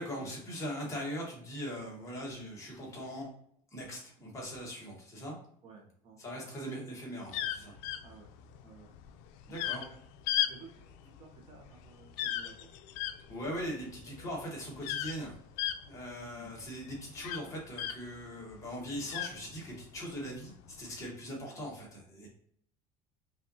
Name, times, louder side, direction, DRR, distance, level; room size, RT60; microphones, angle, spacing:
voice 1, 0.0-3.3 3.7-5.4 6.2-7.7 9.5-9.8 13.3-15.4 15.9-22.3, equal, 20° left, -3 dB, 1.3 m, -40 dB
voice 2, 5.6-6.2 8.0-8.4 8.6-8.9 9.7-9.9 10.5-12.8 16.1-16.6 21.4-21.7, right 4 dB, 35° right, 0 dB, 0.8 m, -54 dB
sound 1, 7.3-18.3 18.6-20.0 20.7-21.0, left 11 dB, 75° left, 0.4 m, -36 dB
5.4 x 2.5 x 2.7 m, 0.64 s
cardioid pair, 165°, 16 cm